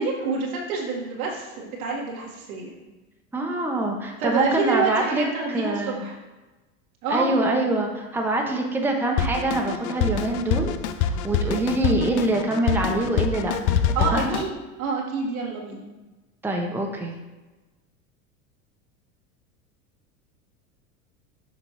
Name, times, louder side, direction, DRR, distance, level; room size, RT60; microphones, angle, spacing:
voice 1, 0.0-2.7 4.2-6.1 7.0-7.3 13.9-14.5 14.8-15.8, right 4 dB, 80° right, -2 dB, 1.8 m, -27 dB
voice 2, 3.3-6.0 7.1-13.8 14.1-14.4 16.4-17.1, right 2 dB, 5° right, 1 dB, 0.9 m, -25 dB
Drum kit, 9.2-14.5, left 7 dB, 45° left, 0.5 m, -25 dB
7.2 x 5.3 x 3.1 m, 1.2 s
hypercardioid pair, 100°, 42 cm